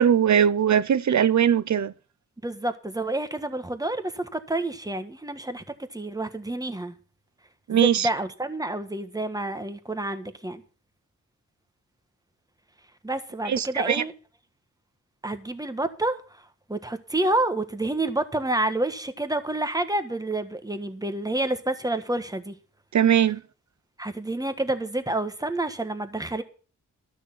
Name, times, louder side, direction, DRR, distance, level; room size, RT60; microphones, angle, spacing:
voice 1, 0.0-1.9 7.7-8.1 13.5-14.0 22.9-23.4, right 9 dB, 60° right, 0.7 m, -20 dB
voice 2, 2.4-5.6 5.9-6.9 7.7-10.6 13.0-14.1 15.2-16.4 16.7-22.6 24.0-26.4, right 2 dB, 10° right, 1.4 m, -28 dB
13.0 x 6.5 x 7.5 m
wide cardioid pair, 85°, 33 cm